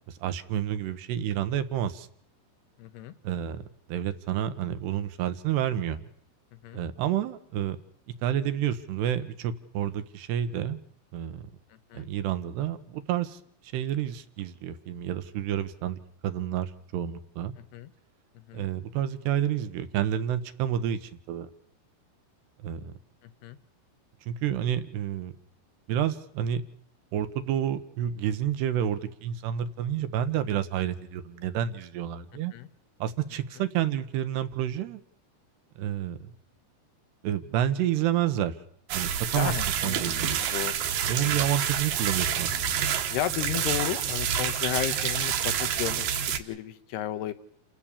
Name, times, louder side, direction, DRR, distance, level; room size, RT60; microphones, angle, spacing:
voice 1, 0.1-2.1 3.2-3.6 3.9-6.0 6.7-7.8 8.2-10.8 11.1-11.4 11.9-13.4 13.7-17.5 18.5-21.5 22.6-22.9 24.3-25.3 25.9-26.6 27.1-32.5 33.0-35.0 35.8-36.3 37.2-38.5 38.9-39.5 39.8-40.4 41.1-42.8, right 10 dB, 80° right, 11 dB, 3.3 m, -29 dB
voice 2, 2.8-3.1 6.6-6.8 11.9-12.1 17.6-17.9 18.4-18.7 23.2-23.6 32.5-32.7 39.3-40.2 40.5-40.8 41.1-41.3 43.1-47.3, left 12 dB, 80° left, 11 dB, 3.1 m, -33 dB
sound 1, 38.9-46.4, right 8 dB, 65° right, 2.8 m, -28 dB
29.5 x 16.5 x 7.3 m, 0.73 s
omnidirectional pair, 4.8 m